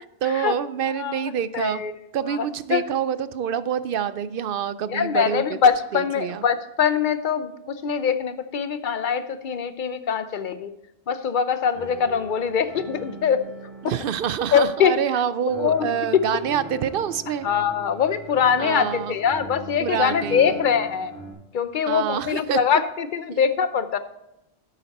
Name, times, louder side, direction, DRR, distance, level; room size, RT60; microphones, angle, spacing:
voice 1, 0.2-1.8 2.1-5.6 5.9-6.4 13.8-17.5 18.6-19.2 19.8-20.6 21.9-22.6 23.3-23.4, right 9 dB, 65° right, 15 dB, 0.7 m, -26 dB
voice 2, 0.9-1.9 2.3-2.8 4.9-10.7 11.1-13.5 14.5-14.9 15.6-16.2 17.4-21.1 21.5-24.0, left 7 dB, 55° left, 11 dB, 0.8 m, -23 dB
sound 1, 11.5-21.3, right 1 dB, 25° right, 3.5 m, -40 dB
11.0 x 8.3 x 4.1 m, 0.88 s
omnidirectional pair, 1.0 m